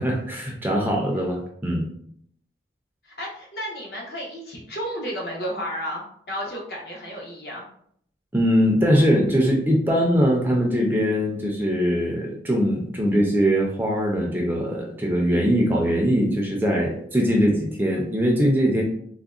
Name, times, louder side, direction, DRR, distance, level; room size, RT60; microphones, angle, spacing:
voice 1, 0.0-1.9 8.3-18.8, equal, 10° right, -1 dB, 0.4 m, -21 dB
voice 2, 3.0-7.6, equal, 60° left, -3 dB, 0.8 m, -32 dB
3.6 x 2.1 x 2.3 m, 0.66 s
head